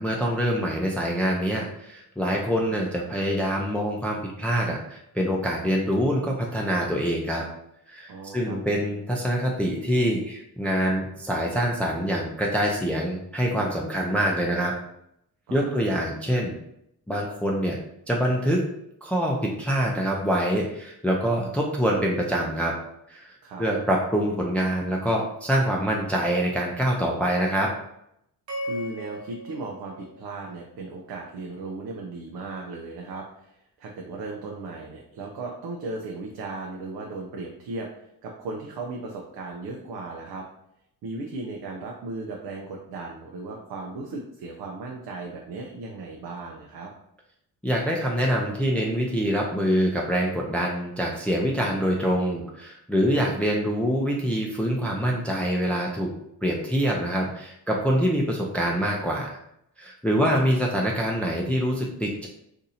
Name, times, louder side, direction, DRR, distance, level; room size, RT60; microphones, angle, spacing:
voice 1, 0.0-7.4 7.9-14.7 15.5-16.6 17.1-17.8 18.1-18.7 19.0-22.7 23.1-27.7 47.6-56.1 56.4-59.3 59.8-62.3, equal, 5° left, -1 dB, 0.4 m, -25 dB
voice 2, 8.1-8.6 15.5-15.9 23.4-23.7 28.6-40.5 41.0-46.9 60.2-60.4, right 3 dB, 85° right, 0 dB, 0.6 m, -36 dB
sound 1, 28.5-30.8, equal, 50° right, 1.1 m, -37 dB
2.7 x 2.6 x 4.1 m, 0.78 s
cardioid pair, 90°, 37 cm